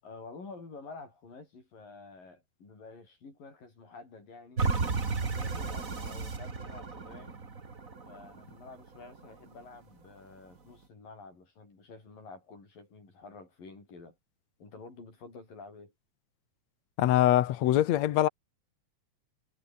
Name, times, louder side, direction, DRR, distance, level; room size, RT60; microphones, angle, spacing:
voice 1, 0.0-4.6 5.2-7.4 8.0-14.2 14.6-15.9, left 3 dB, 85° left, 9.8 m, -49 dB
sound 1, 4.6-9.6 10.1-10.2, right 4 dB, 25° right, 2.4 m, -34 dB
voice 2, 17.0-18.3, left 13 dB, 65° left, 2.0 m, -23 dB
omnidirectional pair, 3.8 m